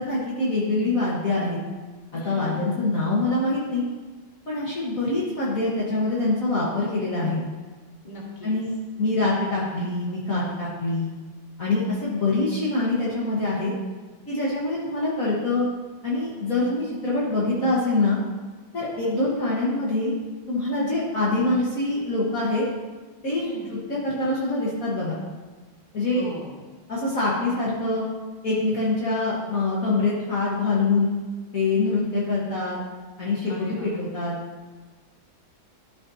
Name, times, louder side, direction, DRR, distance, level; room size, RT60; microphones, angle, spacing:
voice 1, 0.0-1.6 2.1-3.8 4.5-7.4 8.4-8.7 9.0-11.1 11.6-13.7 14.3-15.7 16.0-18.2 18.7-20.1 20.5-22.6 23.2-23.5 23.9-25.2 25.9-26.3 26.9-28.0 28.4-31.1 31.5-32.8 33.2-34.4, left 2 dB, 45° left, -7 dB, 1.7 m, -24 dB
voice 2, 2.1-2.7 8.0-8.5 18.9-19.2 23.4-23.7 26.1-26.6 33.5-33.9, left 1 dB, 25° left, -4 dB, 1.8 m, -38 dB
12.5 x 6.7 x 2.8 m, 1.3 s
omnidirectional pair, 2.3 m